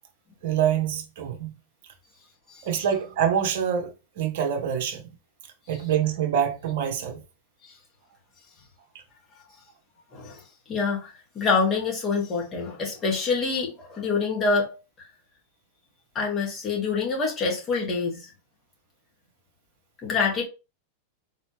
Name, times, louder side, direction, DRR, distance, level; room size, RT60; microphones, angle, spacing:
voice 1, 0.4-1.5 2.6-5.1 5.7-7.2, right 9 dB, 55° right, 0.8 m, -26 dB
voice 2, 10.7-14.8 16.2-18.3 20.0-20.4, left 4 dB, 25° left, 1.7 m, -26 dB
4.1 x 2.8 x 3.1 m
figure-of-eight pair, 90°, 0 cm